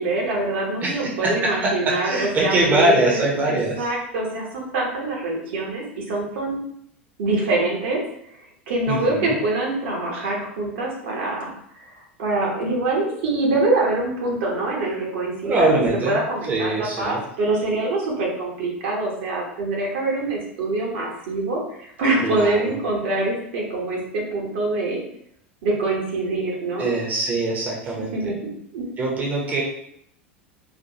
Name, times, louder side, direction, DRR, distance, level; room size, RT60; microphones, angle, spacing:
voice 1, 0.0-6.6 7.2-8.0 8.3-11.5 11.8-25.0 25.6-26.9 28.0-28.9, right 2 dB, 55° right, -2 dB, 1.0 m, -25 dB
voice 2, 0.8-3.9 8.9-9.4 15.4-16.2 16.5-17.2 22.2-22.7 26.8-28.3 29.0-29.6, right 2 dB, 25° right, -3 dB, 0.9 m, -23 dB
4.1 x 2.5 x 2.9 m, 0.71 s
figure-of-eight pair, 80°, 7 cm